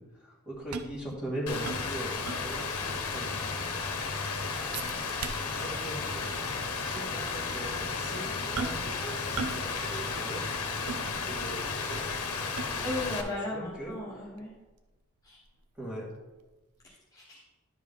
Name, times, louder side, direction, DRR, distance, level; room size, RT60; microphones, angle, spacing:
voice 1, 0.0-3.5 5.4-6.4 6.8-10.4 11.2-12.0 12.7-12.9 13.2-13.9 15.8-16.0, right 1 dB, 5° right, -5 dB, 1.9 m, -40 dB
sound 1, 0.5-2.8 3.2-3.3 3.7-4.1 4.7-5.8 6.1-6.3 7.0-7.1 8.5-9.0 9.3-9.7 10.0-11.6 12.1-13.0 13.6-16.4 16.8-16.9, right 4 dB, 75° right, 0.6 m, -40 dB
Rain, 1.5-13.2, left 4 dB, 85° left, 1.0 m, -33 dB
voice 2, 12.8-14.5 15.2-15.4 16.8-17.4, left 1 dB, 15° left, -7 dB, 1.4 m, -36 dB
11.0 x 5.0 x 3.7 m, 1.1 s
head